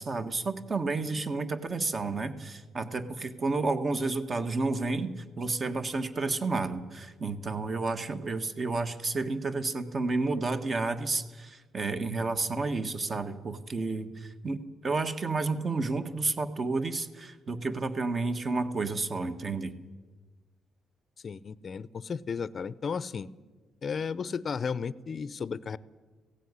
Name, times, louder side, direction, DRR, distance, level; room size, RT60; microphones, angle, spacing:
voice 1, 0.0-19.7, right 3 dB, 35° right, 9 dB, 1.5 m, -31 dB
voice 2, 21.2-23.3 23.8-25.8, left 6 dB, 40° left, 18 dB, 0.6 m, -34 dB
16.5 x 16.0 x 9.8 m, 1.3 s
cardioid pair, 105°, 0 cm